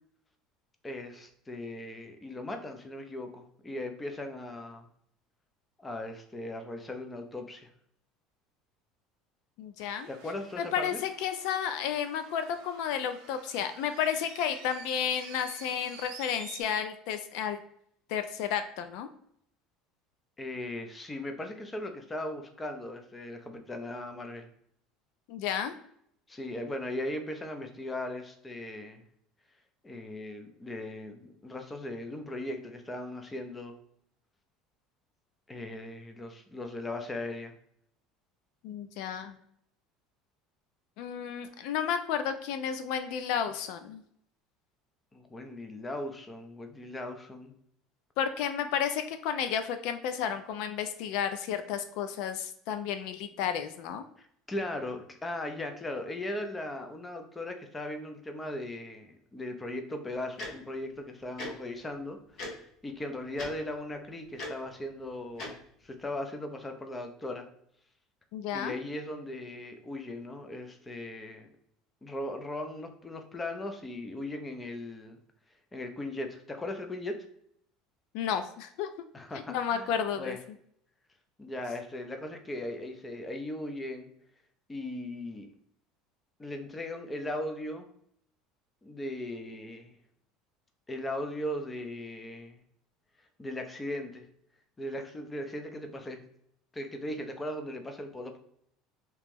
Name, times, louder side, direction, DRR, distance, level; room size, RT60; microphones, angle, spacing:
voice 1, 0.8-4.9 5.8-7.7 10.1-11.0 20.4-24.5 26.3-29.0 29.8-33.7 35.5-37.5 45.1-47.5 54.2-67.5 68.5-71.5 72.0-75.2 75.7-77.2 79.1-80.4 81.4-84.1 84.7-85.5 86.4-87.9 88.8-90.0 90.9-92.6 93.4-94.3 94.8-96.2 96.7-98.4, left 1 dB, 15° left, 5 dB, 0.5 m, -38 dB
voice 2, 9.6-10.1 10.6-17.6 18.1-19.1 25.3-25.7 38.6-39.3 41.0-44.0 48.2-54.0 68.3-68.8 78.1-78.9 79.5-80.4, left 8 dB, 70° left, 9 dB, 0.4 m, -32 dB
sound 1, 9.8-16.6, right 7 dB, 65° right, 0.6 m, -50 dB
Tick-tock, 60.4-60.5 61.4-61.5 62.4-62.5 63.3-63.5 64.4-64.5 65.4-65.5, left 2 dB, 50° left, 1.1 m, -37 dB
3.0 x 2.8 x 3.5 m, 0.68 s
cardioid pair, 140°, 0 cm